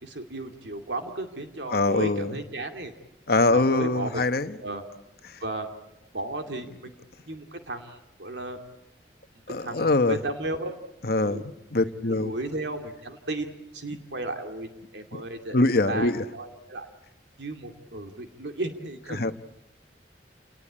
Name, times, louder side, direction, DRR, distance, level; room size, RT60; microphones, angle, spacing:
voice 1, 0.0-2.9 3.5-4.3 4.6-4.8 5.4-5.7 6.1-6.9 7.3-8.6 9.6-10.7 11.2-11.4 11.8-11.9 12.2-15.6 15.9-16.9 17.4-19.3, right 2 dB, 75° right, 5 dB, 2.4 m, -34 dB
voice 2, 1.7-2.4 3.3-4.6 5.2-5.4 9.5-10.2 11.0-12.3 15.1-15.2 15.5-16.2 19.1-19.3, left 2 dB, 55° left, 10 dB, 1.1 m, -24 dB
28.5 x 19.0 x 8.6 m, 0.95 s
head